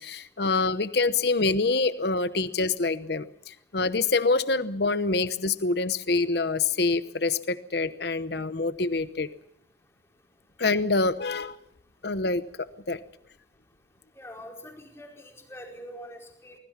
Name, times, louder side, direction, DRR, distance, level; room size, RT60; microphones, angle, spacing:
voice 1, 0.0-9.3 10.6-11.6 12.0-12.4 12.9-13.0, left 3 dB, 60° left, 13 dB, 0.9 m, -26 dB
voice 2, 14.2-16.6, equal, 15° left, 2 dB, 4.8 m, -44 dB
24.5 x 22.0 x 5.8 m, 0.74 s
head